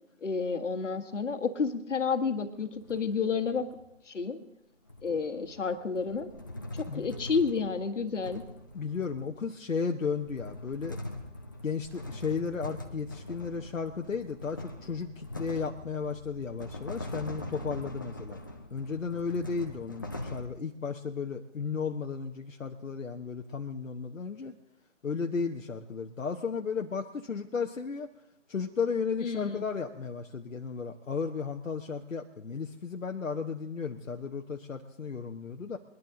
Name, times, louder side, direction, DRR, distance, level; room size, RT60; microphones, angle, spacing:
voice 1, 0.2-3.7 4.1-4.4 5.0-6.3 6.7-8.4 29.2-29.6, left 5 dB, 65° left, 9 dB, 1.5 m, -30 dB
sound 1, 2.6-3.9 4.9-9.5 10.0-20.5, left 1 dB, 15° left, 0.5 m, -43 dB
voice 2, 8.7-11.0 11.6-18.4 18.7-24.5 25.0-28.1 28.5-35.8, left 5 dB, 85° left, 3 dB, 1.0 m, -34 dB
22.0 x 11.0 x 3.8 m, 0.81 s
figure-of-eight pair, 150°, 39 cm